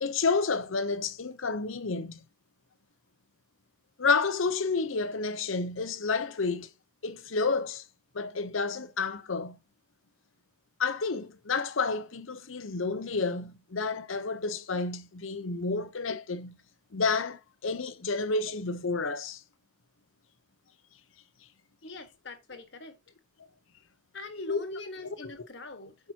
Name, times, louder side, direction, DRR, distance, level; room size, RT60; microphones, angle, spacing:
voice 1, 0.0-2.2 4.0-6.7 7.0-7.8 8.1-9.6 10.8-16.6 16.9-19.4 24.5-24.6 25.0-25.1, left 4 dB, 85° left, 0.8 m, -30 dB
voice 2, 21.8-23.0 24.1-26.0, left 2 dB, 60° left, 1.5 m, -42 dB
8.6 x 6.0 x 2.9 m
head